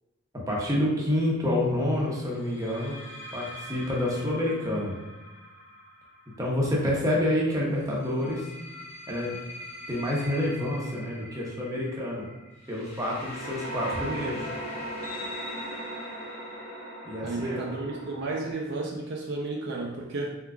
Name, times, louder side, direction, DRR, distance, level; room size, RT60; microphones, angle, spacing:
voice 1, 0.5-3.0 3.3-4.9 6.4-8.4 9.1-9.4 9.9-12.3 12.7-14.4 17.0-17.6, left 1 dB, 15° right, -4 dB, 0.8 m, -28 dB
sound 1, 0.7-1.0 2.5-7.2 8.0-18.5, equal, 30° left, 0.8 m, -40 dB
voice 2, 17.2-20.3, right 2 dB, 50° right, -1 dB, 0.5 m, -32 dB
4.4 x 3.7 x 2.3 m, 1.1 s
head